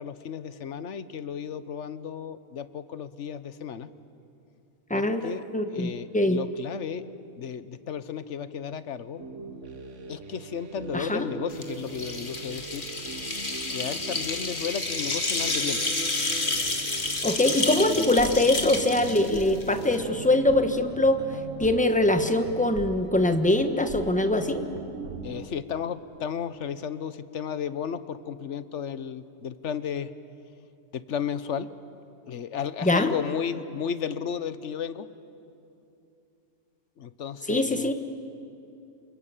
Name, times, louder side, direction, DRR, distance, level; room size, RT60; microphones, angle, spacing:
voice 1, 0.0-3.9 4.9-5.4 5.7-7.0 7.4-9.2 10.1-12.9 13.7-15.8 25.2-30.1 30.9-31.7 32.3-35.1 37.0-37.9, left 7 dB, 70° left, 14 dB, 1.3 m, -33 dB
voice 2, 4.9-6.4 10.9-11.3 17.2-21.2 21.6-24.6 32.8-33.1 37.5-37.9, left 1 dB, 5° left, 7 dB, 1.3 m, -23 dB
sound 1, 9.2-25.5, right 4 dB, 75° right, 1.6 m, -40 dB
sound 2, 11.5-19.9, left 2 dB, 45° left, 2.2 m, -30 dB
28.0 x 22.0 x 9.0 m, 2.7 s
omnidirectional pair, 1.3 m